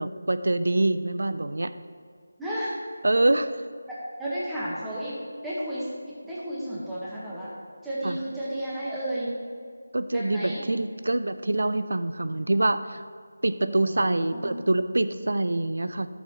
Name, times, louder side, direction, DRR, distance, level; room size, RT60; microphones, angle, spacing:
voice 1, 0.0-1.7 3.0-3.6 8.0-8.2 9.9-13.0 13.4-16.1, right 2 dB, 75° right, 12 dB, 0.5 m, -25 dB
voice 2, 2.4-2.7 3.9-4.0 4.2-5.2 5.4-7.5 7.8-9.3 10.1-10.6 13.6-14.5, right 1 dB, 5° right, -10 dB, 1.6 m, -33 dB
13.5 x 7.0 x 3.2 m, 2.1 s
figure-of-eight pair, 170°, 0 cm